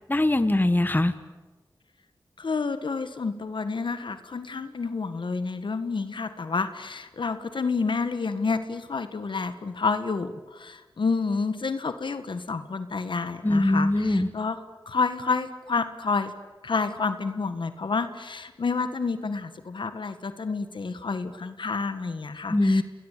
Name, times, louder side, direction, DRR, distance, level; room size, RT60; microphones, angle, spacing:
voice 1, 0.1-1.1 13.4-14.3 22.5-22.8, left 1 dB, 25° left, 12 dB, 1.5 m, -22 dB
voice 2, 2.4-14.6 14.9-16.3 16.6-22.8, left 4 dB, 70° left, 10 dB, 1.7 m, -29 dB
29.0 x 21.0 x 8.4 m, 1.2 s
cardioid pair, 45°, 8 cm